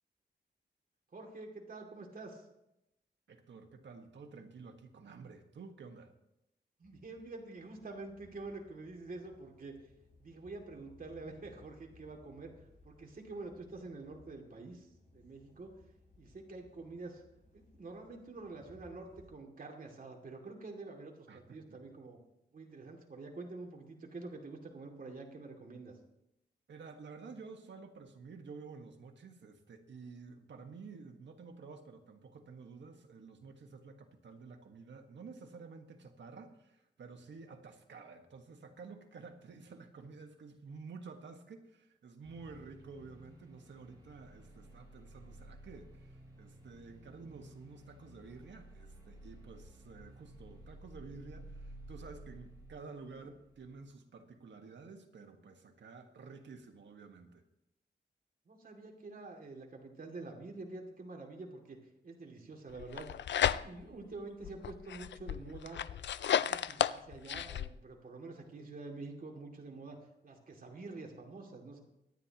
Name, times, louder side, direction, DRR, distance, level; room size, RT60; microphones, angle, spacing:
voice 1, 1.1-2.5 6.8-9.7 10.2-12.5 12.8-15.8 16.2-17.2 17.5-22.2 22.5-25.9 58.5-61.8 62.0-65.8 66.3-71.8, right 3 dB, 50° right, 0 dB, 2.5 m, -47 dB
voice 2, 3.3-6.1 21.3-21.8 26.7-57.4, right 4 dB, 80° right, 4 dB, 1.6 m, -51 dB
sound 1, 6.8-19.3, left 2 dB, 50° left, 6.2 m, -63 dB
sound 2, 42.2-53.8, right 1 dB, 20° right, 4.6 m, -54 dB
sound 3, 62.8-64.0 64.4-67.7, left 9 dB, 80° left, 0.4 m, -33 dB
24.5 x 9.8 x 3.0 m, 0.86 s
wide cardioid pair, 90°, 19 cm